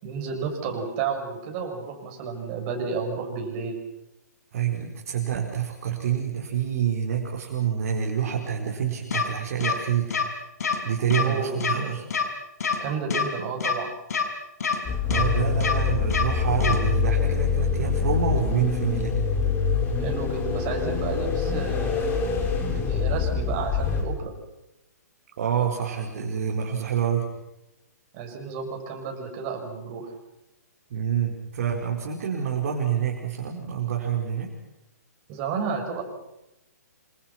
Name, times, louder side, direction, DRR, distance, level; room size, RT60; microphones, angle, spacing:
voice 1, 0.0-3.8 11.2-12.0 12.8-13.9 20.0-22.2 22.7-24.3 28.1-30.1 35.3-36.0, right 5 dB, 30° right, 2 dB, 7.5 m, -31 dB
voice 2, 4.5-10.2 10.8-12.0 15.0-19.2 25.4-27.3 30.9-34.5, right 8 dB, 50° right, -1 dB, 5.0 m, -27 dB
sound 1, 9.1-9.2 9.6-9.7 10.1-10.2 10.6-10.8 11.1-11.2 11.6-11.7 12.1-12.2 12.6-12.8 13.1-13.2 13.6-13.7 14.1-14.2 14.6-14.8 15.1-15.2 15.6-15.7 16.1-16.2 16.6-16.8, left 6 dB, 65° left, 5.0 m, -25 dB
sound 2, 14.9-24.0, left 5 dB, 20° left, 5.3 m, -25 dB
27.5 x 27.5 x 6.1 m, 0.93 s
figure-of-eight pair, 130°, 9 cm